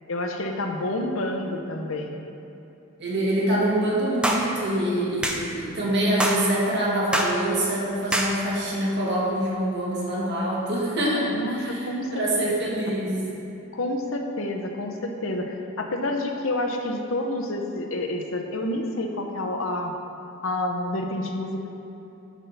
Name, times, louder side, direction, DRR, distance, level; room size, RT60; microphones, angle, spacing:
voice 1, 0.1-2.1 11.3-12.1 13.7-19.9 20.4-21.7, left 1 dB, 75° left, 3 dB, 0.8 m, -28 dB
voice 2, 3.0-13.2, right 1 dB, 55° right, -5 dB, 1.8 m, -25 dB
sound 1, 4.2-4.5 5.2-5.4 6.2-6.4 7.1-7.4 8.1-8.3, right 1 dB, 5° right, 0.5 m, -24 dB
9.8 x 3.6 x 5.6 m, 2.9 s
head